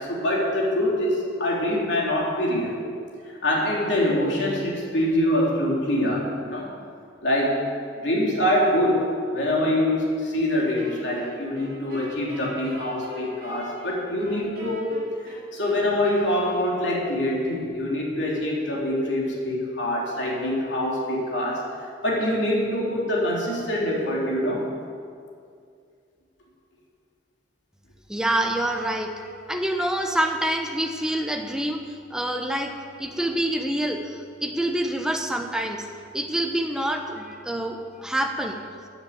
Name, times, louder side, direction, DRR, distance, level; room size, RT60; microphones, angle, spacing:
voice 1, 0.0-2.8 3.4-6.7 7.2-7.7 8.0-9.0 9.3-15.0 15.2-21.7 22.0-24.7, left 1 dB, 70° left, -3 dB, 3.2 m, -24 dB
Wind instrument woodwind instrument, 10.7-17.3, right 1 dB, 55° right, 3.5 m, -43 dB
voice 2, 28.1-32.7 33.0-35.9 36.1-38.6, right 1 dB, 5° right, 3 dB, 0.9 m, -27 dB
15.5 x 8.1 x 7.4 m, 2.3 s
head